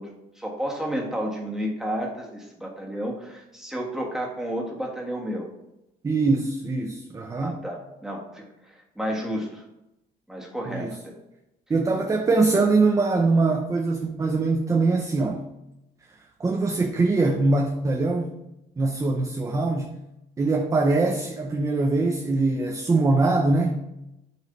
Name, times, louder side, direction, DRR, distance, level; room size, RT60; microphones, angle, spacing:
voice 1, 0.0-5.5 7.3-9.6 10.3-11.2, equal, 5° right, -1 dB, 1.6 m, -32 dB
voice 2, 6.0-7.6 10.7-11.0 11.7-15.4 16.4-18.3 18.8-19.9 20.4-23.8, right 3 dB, 20° right, 3 dB, 0.6 m, -22 dB
6.6 x 3.2 x 5.2 m, 0.90 s
cardioid pair, 110°, 17 cm